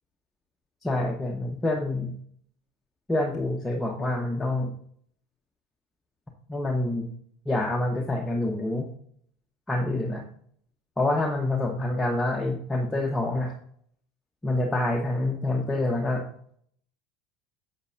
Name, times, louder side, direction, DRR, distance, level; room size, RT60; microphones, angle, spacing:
voice 1, 0.8-2.2 3.1-4.7 6.5-7.1 7.5-8.9 9.7-10.3 11.0-13.5 14.4-16.2, left 2 dB, 15° left, 0 dB, 1.1 m, -27 dB
9.5 x 7.2 x 2.6 m, 0.64 s
figure-of-eight pair, 75°, 0 cm